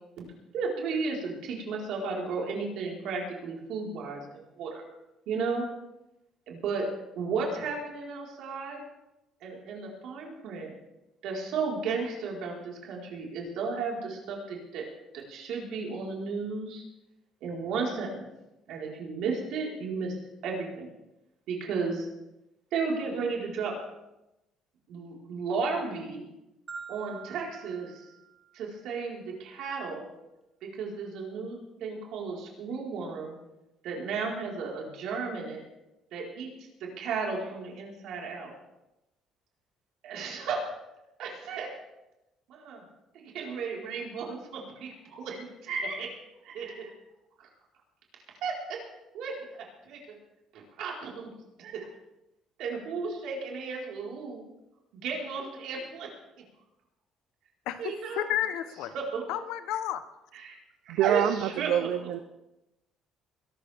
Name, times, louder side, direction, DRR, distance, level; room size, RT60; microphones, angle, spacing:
voice 1, 0.5-4.2 4.6-4.8 5.3-5.6 6.5-6.9 7.2-8.8 9.4-10.7 11.2-14.8 15.1-16.8 17.4-18.2 18.7-20.1 20.4-20.9 21.5-22.1 22.7-23.7 24.9-26.3 26.9-28.1 28.5-30.1 30.6-33.3 33.8-35.6 36.1-36.5 36.8-38.5 40.0-40.6 41.2-41.7 42.5-42.8 43.1-46.1 46.4-46.9 48.4-48.8 49.1-50.0 50.5-51.3 51.6-51.9 52.6-54.5 54.9-56.1 57.8-58.3 58.9-59.2 60.3-60.6 60.8-61.7, right 4 dB, 70° right, -2 dB, 4.5 m, -34 dB
Marimba xylophone, 26.7-28.9, right 6 dB, 25° right, 2.8 m, -46 dB
voice 2, 57.7-58.9 59.3-60.0, left 11 dB, 85° left, 11 dB, 1.0 m, -31 dB
voice 3, 60.9-62.2, right 10 dB, 85° right, 10 dB, 0.6 m, -26 dB
21.5 x 12.5 x 3.6 m, 0.94 s
cardioid pair, 145°, 0 cm